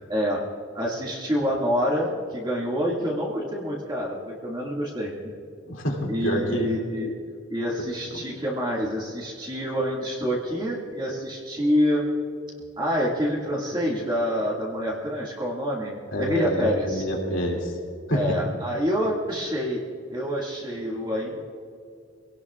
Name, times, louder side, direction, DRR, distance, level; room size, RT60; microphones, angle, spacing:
voice 1, 0.1-0.4 0.7-5.3 6.1-7.1 7.5-12.0 12.8-17.1 18.1-19.8 20.1-21.4, equal, 25° right, -4 dB, 2.1 m, -27 dB
voice 2, 5.7-6.7 16.1-17.7 18.1-18.3, equal, 85° left, 0 dB, 2.6 m, -27 dB
24.5 x 17.5 x 2.4 m, 2.3 s
head